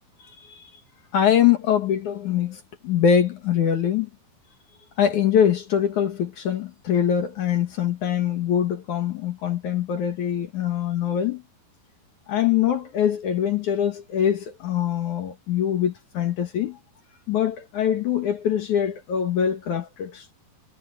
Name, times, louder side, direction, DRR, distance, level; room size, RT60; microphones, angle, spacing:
voice 1, 1.1-4.1 5.0-11.4 12.3-16.8 17.3-20.3, left 9 dB, 55° left, 2.5 m, -23 dB
omnidirectional pair, 4.9 m